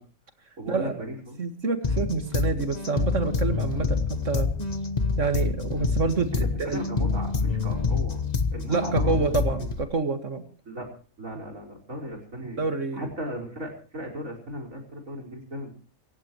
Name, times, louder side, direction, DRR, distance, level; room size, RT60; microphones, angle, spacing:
voice 1, 0.6-1.4 6.4-8.2 8.5-9.7 10.7-10.9 11.2-12.6 12.9-15.8, equal, 80° right, 4 dB, 5.4 m, -36 dB
voice 2, 1.4-4.5 5.2-6.8 8.7-10.4 12.6-13.1, right 4 dB, 65° right, 8 dB, 2.2 m, -27 dB
sound 1, 1.8-9.8, left 4 dB, 30° left, 1.3 m, -27 dB
27.0 x 16.0 x 3.1 m, 0.39 s
omnidirectional pair, 1.4 m